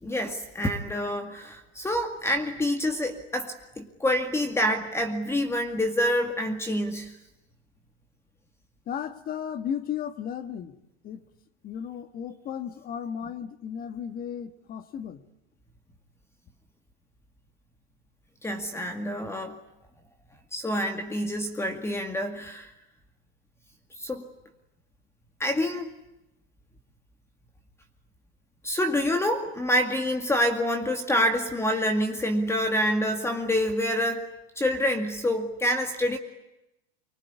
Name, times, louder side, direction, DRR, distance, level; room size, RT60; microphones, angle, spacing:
voice 1, 0.0-7.1 18.4-19.6 20.5-22.7 24.0-24.3 25.4-25.9 28.6-34.3 34.6-36.2, left 1 dB, 10° left, 7 dB, 2.1 m, -27 dB
voice 2, 8.9-10.7 11.0-11.2 11.6-15.2, left 8 dB, 30° left, 11 dB, 1.9 m, -34 dB
25.0 x 23.5 x 9.8 m, 0.88 s
supercardioid pair, 135°, 31 cm